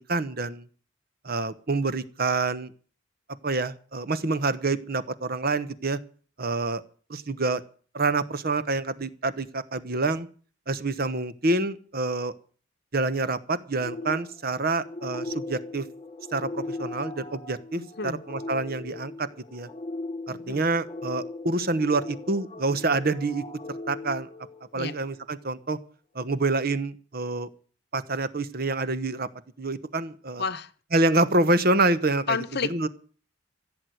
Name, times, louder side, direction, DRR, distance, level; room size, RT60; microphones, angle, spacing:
voice 1, 0.1-0.7 1.2-2.7 3.4-6.0 6.4-6.8 7.1-7.6 7.9-10.3 10.7-12.3 12.9-15.9 16.3-19.7 20.3-24.3 24.7-25.8 26.1-27.5 27.9-29.3 29.6-30.4 30.9-32.4 32.7-32.9, right 2 dB, 45° right, 1.0 m, -27 dB
sound 1, 13.8-25.1, left 2 dB, 20° left, 1.1 m, -38 dB
voice 2, 17.8-18.2 20.3-20.6 24.7-25.0 30.4-30.7 32.3-32.9, left 5 dB, 50° left, 0.9 m, -31 dB
15.5 x 8.0 x 9.3 m
head